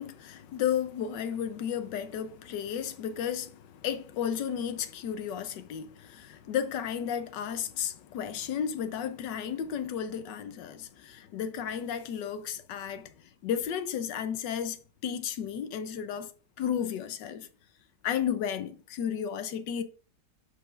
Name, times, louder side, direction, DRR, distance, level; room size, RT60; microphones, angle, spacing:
voice 1, 0.0-16.3 16.6-17.5 18.0-19.8, left 8 dB, 85° left, 1.4 m, -33 dB
11.5 x 5.0 x 2.5 m
omnidirectional pair, 1.9 m